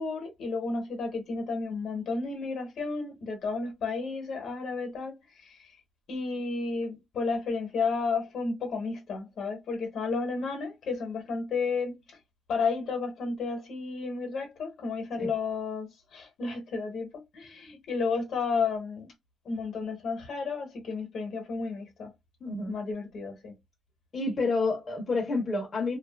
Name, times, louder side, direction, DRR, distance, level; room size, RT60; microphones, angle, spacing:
voice 1, 0.0-5.8 6.1-12.2 12.5-19.1 19.4-22.1 22.7-23.5, left 4 dB, 55° left, 1.0 m, -32 dB
voice 2, 22.4-22.7 24.1-26.0, left 3 dB, 25° left, 0.8 m, -29 dB
2.6 x 2.3 x 2.3 m
cardioid pair, 175°, 0 cm